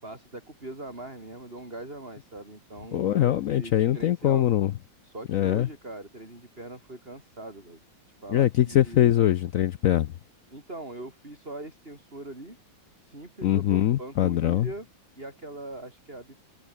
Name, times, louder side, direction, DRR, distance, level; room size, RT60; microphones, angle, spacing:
voice 1, 0.0-4.5 5.0-7.8 8.2-9.1 10.5-12.6 13.0-14.9 15.2-16.4, right 2 dB, 30° right, 6.2 m, -41 dB
voice 2, 2.9-4.7 5.3-5.7 8.3-10.1 13.4-14.7, left 12 dB, 70° left, 0.8 m, -22 dB
omnidirectional pair, 2.0 m